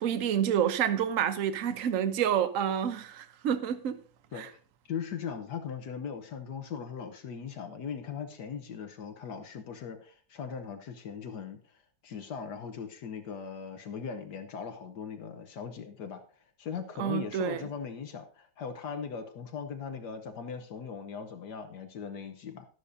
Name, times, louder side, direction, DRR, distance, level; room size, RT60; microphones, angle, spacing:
voice 1, 0.0-4.0 4.3-4.5 17.0-17.7, right 9 dB, 55° right, 1.1 m, -28 dB
voice 2, 4.9-11.6 12.0-16.2 16.6-22.7, left 6 dB, 70° left, 1.5 m, -39 dB
12.5 x 11.5 x 2.7 m
omnidirectional pair, 1.9 m